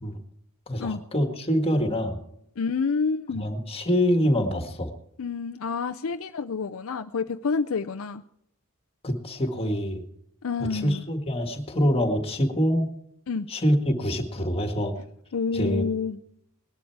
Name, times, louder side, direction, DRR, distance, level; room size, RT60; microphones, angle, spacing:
voice 1, 0.7-2.2 3.3-4.9 9.0-10.0 10.7-12.9 13.5-14.9 15.5-15.8, equal, 25° left, 5 dB, 1.8 m, -25 dB
voice 2, 2.6-3.5 5.2-8.2 10.4-11.0 13.3-13.5 15.3-16.2, left 5 dB, 65° left, 8 dB, 0.5 m, -28 dB
19.5 x 11.5 x 4.6 m, 0.74 s
head